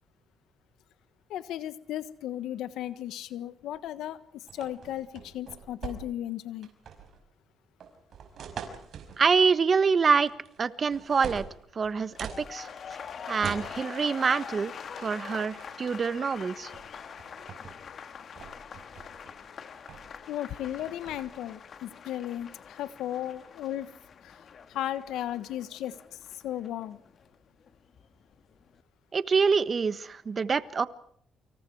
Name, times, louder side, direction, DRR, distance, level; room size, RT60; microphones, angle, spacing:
voice 1, 1.3-6.7 20.3-23.9 24.2-24.4 24.7-26.0 26.3-27.0, left 12 dB, 85° left, 14 dB, 1.4 m, -35 dB
sound 1, 4.5-6.3 6.6-7.2 7.8-9.2 10.3-10.6 10.9-12.4 13.4-13.7 15.0-15.2 15.5-15.9 16.7-16.9 17.2-17.7 18.1-19.4 19.9-20.2 20.5-21.2, right 7 dB, 60° right, 5.5 m, -43 dB
voice 2, 9.2-10.3 10.6-11.5 11.7-12.7 13.3-16.7 29.1-30.9, right 5 dB, 40° right, 14 dB, 1.3 m, -26 dB
sound 2, 12.0-28.1 28.4-28.8, left 7 dB, 55° left, 1.9 m, -45 dB
29.0 x 26.0 x 4.8 m, 0.63 s
cardioid pair, 90°, 0 cm